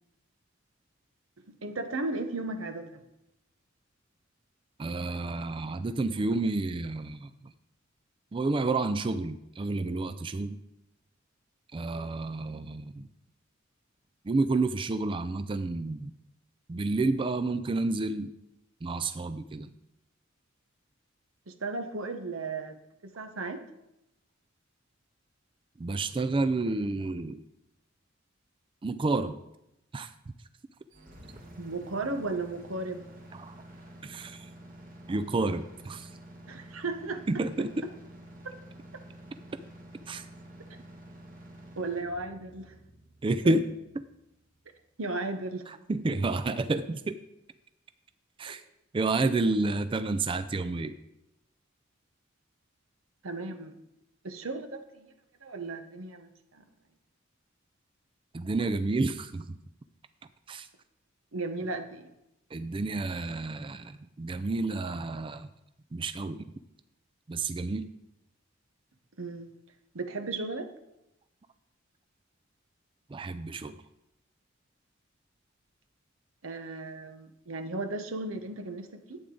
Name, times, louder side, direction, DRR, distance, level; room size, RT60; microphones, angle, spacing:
voice 1, 1.5-3.0 21.5-22.8 23.0-23.6 31.6-33.0 36.5-37.2 38.4-38.6 41.8-42.7 43.5-43.6 45.0-45.6 53.2-53.8 54.2-55.1 55.4-56.6 61.3-62.1 69.2-69.5 69.9-70.7 76.4-79.2, right 3 dB, 85° right, 8 dB, 1.0 m, -35 dB
voice 2, 4.8-7.5 8.3-10.6 11.7-13.1 14.2-16.1 16.7-18.3 18.8-19.7 25.8-27.4 28.8-29.4 29.9-30.1 33.3-33.5 34.0-34.5 35.1-36.1 37.3-37.8 40.1-40.2 43.2-43.6 45.7-47.2 48.4-48.6 48.9-50.9 58.3-59.6 60.5-60.7 62.5-65.5 65.9-66.5 67.3-67.9 73.1-73.8, right 3 dB, 25° right, 11 dB, 0.4 m, -30 dB
sound 1, 30.9-44.8, right 1 dB, 45° right, 1.8 m, -50 dB
11.5 x 8.6 x 3.9 m, 0.87 s
head